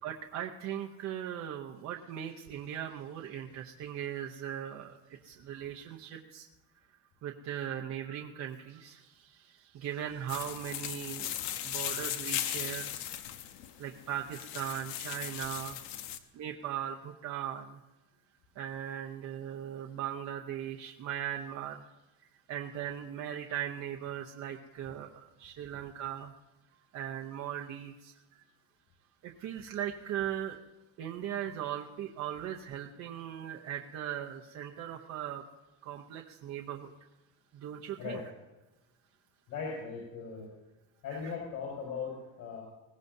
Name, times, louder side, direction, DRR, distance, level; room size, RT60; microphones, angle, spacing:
voice 1, 0.0-6.5 6.9-13.0 13.8-15.8 16.3-17.8 18.6-21.8 22.2-26.3 26.9-28.4 29.2-30.6 31.0-35.4 35.8-36.9 37.5-38.2 41.1-41.3, right 10 dB, 40° right, 1 dB, 0.8 m, -39 dB
sound 1, 10.3-16.2, left 11 dB, 85° left, 1.1 m, -38 dB
voice 2, 39.5-40.5 41.0-42.6, left 5 dB, 55° left, -4 dB, 5.5 m, -38 dB
21.0 x 17.5 x 2.7 m, 1.1 s
cardioid pair, 170°, 41 cm